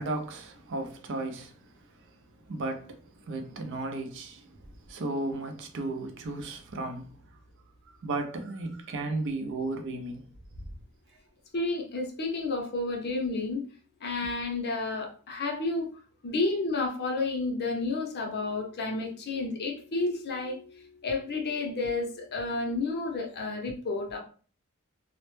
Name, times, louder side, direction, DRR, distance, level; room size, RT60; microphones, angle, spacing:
voice 1, 0.0-1.5 2.5-3.0 3.3-4.6 4.9-7.2 8.0-10.3, right 2 dB, 60° right, 0.4 m, -34 dB
voice 2, 11.5-13.6 14.0-15.9 16.2-24.2, left 3 dB, 50° left, 0.6 m, -31 dB
2.1 x 2.0 x 3.0 m
head